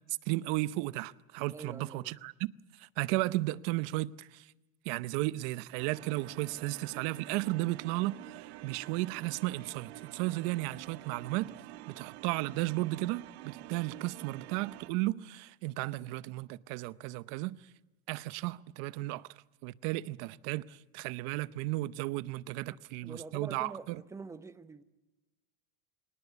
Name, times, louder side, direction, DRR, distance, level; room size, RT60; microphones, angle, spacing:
voice 1, 0.3-2.5 2.8-4.4 4.9-11.5 12.0-17.6 18.1-19.3 19.6-24.0, right 19 dB, 65° right, 0.8 m, -34 dB
voice 2, 1.5-2.1 23.0-24.8, right 4 dB, 10° right, 0.8 m, -45 dB
sound 1, 5.8-14.9, right 16 dB, 80° right, 1.4 m, -48 dB
24.0 x 19.0 x 8.2 m
cardioid pair, 150°, 32 cm